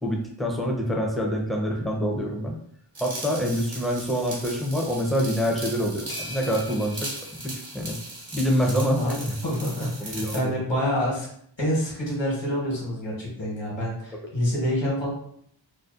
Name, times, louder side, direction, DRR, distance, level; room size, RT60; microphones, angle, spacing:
voice 1, 0.0-2.6 3.0-7.1 7.4-8.0 8.3-9.3 10.0-10.5, equal, ahead, -1 dB, 0.5 m, -26 dB
sound 1, 2.9-10.4, right 2 dB, 70° right, 0.9 m, -38 dB
sound 2, 6.1-8.6, left 1 dB, 50° left, 0.5 m, -43 dB
voice 2, 8.9-11.3 11.6-15.1, equal, 65° left, -4 dB, 1.1 m, -27 dB
2.6 x 2.1 x 2.4 m, 0.67 s
wide cardioid pair, 50°, 47 cm